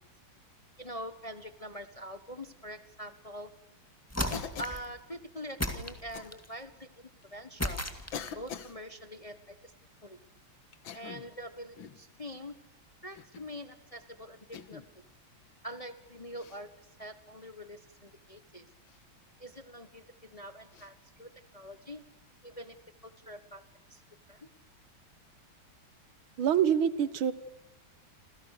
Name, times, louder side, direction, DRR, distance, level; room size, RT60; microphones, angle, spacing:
voice 1, 0.8-3.5 4.2-7.9 8.3-9.7 10.0-10.2 10.9-12.6 13.0-14.8 15.6-16.7 17.0-18.7 19.4-22.0 22.4-23.6 23.9-24.0 24.3-24.5, equal, 25° left, 11 dB, 0.8 m, -44 dB
sound 1, 4.1-4.9 5.6-6.5 7.6-8.5, left 1 dB, 5° left, 2.0 m, -35 dB
Cough, 4.3-4.9 6.1-6.3 7.2-7.3 8.1-8.8 10.7-11.3 11.8-12.0 13.1-13.5 14.5-14.9 16.4-16.6 18.8-19.0 20.7-20.9, left 8 dB, 75° left, 2.0 m, -43 dB
voice 2, 26.4-27.3, right 9 dB, 85° right, 15 dB, 2.0 m, -25 dB
28.5 x 27.5 x 6.6 m, 0.91 s
omnidirectional pair, 2.2 m